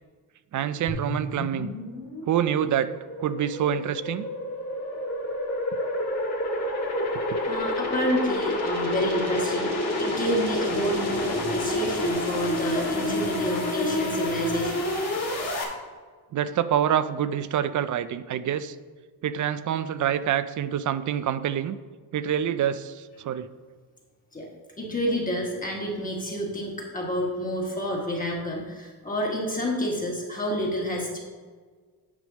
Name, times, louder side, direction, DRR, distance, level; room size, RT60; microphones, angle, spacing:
voice 1, 0.5-1.7 2.2-2.9 3.2-4.3 7.3-7.4 16.3-18.7 19.2-21.8 22.1-23.5, right 9 dB, 50° right, 13 dB, 0.4 m, -26 dB
sound 1, 0.9-15.6, left 1 dB, 40° left, 1.8 m, -29 dB
voice 2, 7.4-14.9 24.3-24.5 24.8-31.2, equal, 20° left, -3 dB, 1.3 m, -29 dB
9.6 x 3.4 x 6.2 m, 1.5 s
cardioid pair, 145°, 40 cm